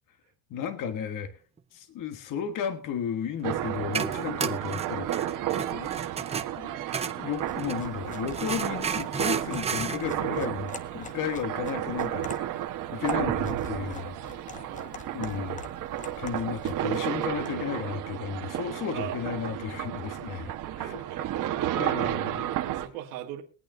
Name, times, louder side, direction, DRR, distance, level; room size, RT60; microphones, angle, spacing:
voice 1, 0.5-1.3 1.7-5.3 5.7-5.9 6.6-6.7 7.1-12.6 12.9-14.2 15.1-15.6 16.2-20.9 21.8-22.6, left 8 dB, 50° left, 9 dB, 1.4 m, -34 dB
sound 1, 3.3-7.9 8.3-10.0, right 6 dB, 15° right, 0.6 m, -32 dB
sound 2, 3.4-22.9, right 12 dB, 50° right, 1.3 m, -32 dB
sound 3, 7.3-17.6, left 5 dB, 20° left, 0.8 m, -46 dB
voice 2, 20.3-22.0 22.6-23.4, right 12 dB, 90° right, 0 dB, 1.8 m, -41 dB
22.0 x 8.9 x 2.6 m, 0.40 s
cardioid pair, 125°, 40 cm